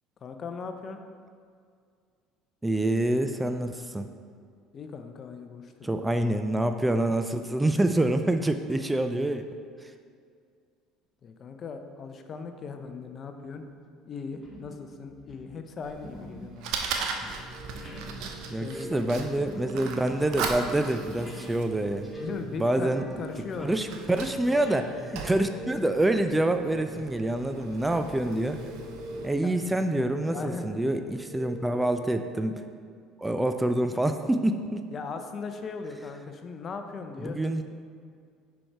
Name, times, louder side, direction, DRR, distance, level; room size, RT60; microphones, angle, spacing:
voice 1, 0.2-1.0 4.7-6.1 11.2-13.6 14.1-16.7 18.5-19.2 22.1-23.8 29.4-29.5 30.3-30.6 34.9-37.4, left 5 dB, 45° left, 7 dB, 0.6 m, -38 dB
voice 2, 2.6-4.1 5.8-9.5 9.8-9.9 18.5-22.1 22.6-23.0 23.6-28.6 29.2-32.6 33.2-34.9 37.2-37.8, right 1 dB, 10° right, 8 dB, 0.4 m, -26 dB
sound 1, 12.6-13.0 13.5-13.7 14.3-14.8 15.1-21.6 21.9-23.4 23.6-24.8, equal, 10° left, 1.7 m, -47 dB
Fire, 15.8-29.3, right 5 dB, 65° right, 0.7 m, -39 dB
sound 2, 17.3-32.0, right 1 dB, 30° right, 1.2 m, -44 dB
6.2 x 4.7 x 4.5 m, 2.2 s
hypercardioid pair, 75°, 0 cm